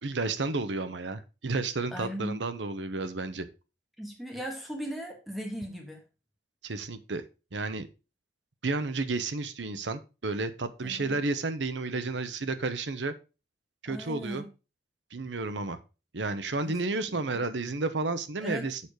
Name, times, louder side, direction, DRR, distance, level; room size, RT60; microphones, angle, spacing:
voice 1, 0.0-3.5 6.6-7.2 7.5-7.9 8.6-13.1 13.8-14.4 15.1-15.8 16.1-18.8, right 3 dB, 90° right, 11 dB, 0.9 m, -31 dB
voice 2, 1.9-2.4 4.0-6.0 10.8-11.2 13.9-14.5 16.6-16.8 17.1-17.2 18.4-18.6, equal, ahead, 1 dB, 1.6 m, -37 dB
7.0 x 4.8 x 5.0 m, 0.31 s
head